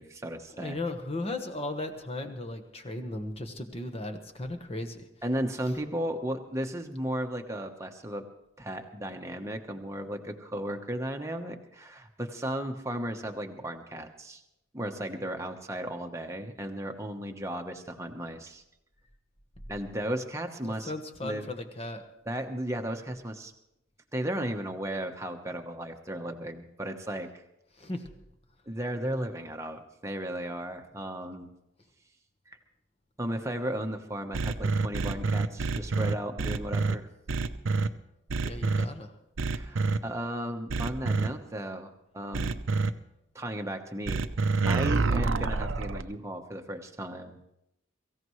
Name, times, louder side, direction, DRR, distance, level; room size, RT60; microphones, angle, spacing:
voice 1, 0.0-0.8 5.2-8.2 8.6-14.4 14.7-18.6 19.7-20.9 21.2-21.5 22.2-23.5 24.1-27.3 28.7-31.5 32.5-32.6 33.2-37.1 39.4-42.6 43.3-44.2 44.7-47.4, right 1 dB, 15° right, 4 dB, 1.0 m, -35 dB
voice 2, 0.6-5.0 20.6-22.0 27.8-28.1 38.4-39.1, left 2 dB, 30° left, 6 dB, 1.3 m, -36 dB
sound 1, 34.3-36.9 37.3-37.9 38.3-38.8 39.4-40.0 40.7-41.3 42.3-42.9 44.1-46.0, right 3 dB, 70° right, 0.6 m, -27 dB
23.5 x 15.5 x 3.2 m, 0.86 s
head